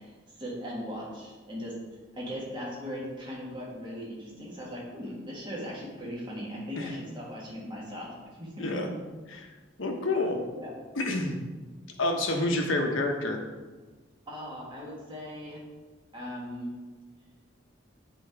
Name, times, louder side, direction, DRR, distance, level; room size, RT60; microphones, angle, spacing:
voice 1, 0.0-1.7 2.1-8.7 10.5-10.7 12.4-12.5 14.3-15.6 16.1-16.7, equal, 25° right, -5 dB, 1.7 m, -39 dB
voice 2, 8.6-8.9 9.3-9.5 9.8-10.4 10.9-11.4 12.0-13.4, left 2 dB, 80° left, 2 dB, 1.0 m, -28 dB
8.6 x 3.9 x 4.7 m, 1.3 s
head